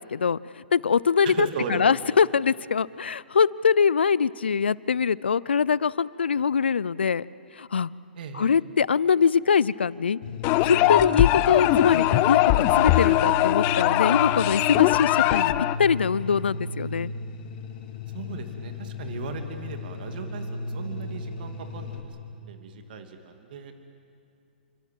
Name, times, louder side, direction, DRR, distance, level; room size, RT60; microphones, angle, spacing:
voice 1, 0.0-7.2 7.6-7.9 8.3-10.2 10.6-15.5 15.8-17.1, left 6 dB, 80° left, 21 dB, 0.5 m, -23 dB
voice 2, 1.2-2.1 8.2-8.5 18.1-22.0 22.3-23.7, right 6 dB, 55° right, 6 dB, 2.7 m, -37 dB
sound 1, 10.2-22.0, left 2 dB, 50° left, 4.2 m, -35 dB
sound 2, 10.4-15.8, left 17 dB, 35° left, 0.7 m, -21 dB
28.5 x 24.0 x 7.6 m, 2.5 s
hypercardioid pair, 115°, 6 cm